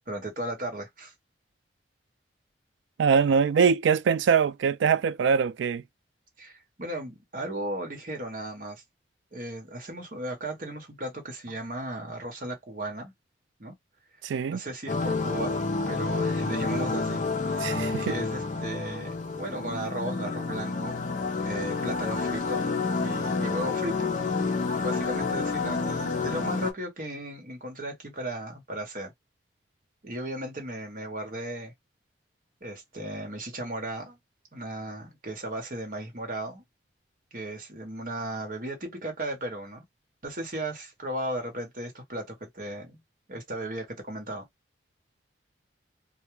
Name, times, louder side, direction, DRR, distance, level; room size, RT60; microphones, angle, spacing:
voice 1, 0.1-1.1 6.4-8.8 9.3-13.1 13.6-13.7 14.5-21.0 21.4-22.7 23.0-24.1 24.8-29.1 30.0-31.7 32.6-34.2 34.5-36.6 37.3-39.8 40.2-43.0 43.3-44.5, right 1 dB, 50° right, 1.0 m, -36 dB
voice 2, 3.0-5.8 14.2-14.6 17.6-18.2, right 6 dB, 85° right, 0.3 m, -23 dB
sound 1, 14.9-26.7, left 4 dB, 45° left, 0.4 m, -29 dB
2.3 x 2.1 x 3.0 m
head